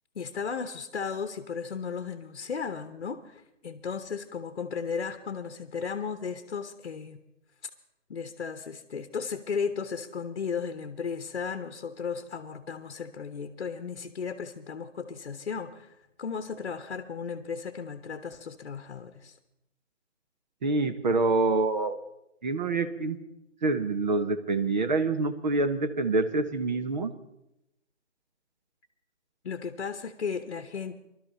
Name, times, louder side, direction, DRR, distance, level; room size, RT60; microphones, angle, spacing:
voice 1, 0.1-7.2 8.1-15.9 16.2-19.4 29.4-31.0, left 6 dB, 50° left, 9 dB, 1.0 m, -35 dB
voice 2, 20.6-22.0 22.4-23.2 23.6-27.1, right 3 dB, 35° right, 10 dB, 0.9 m, -26 dB
22.0 x 12.0 x 4.1 m, 0.85 s
figure-of-eight pair, 150°, 37 cm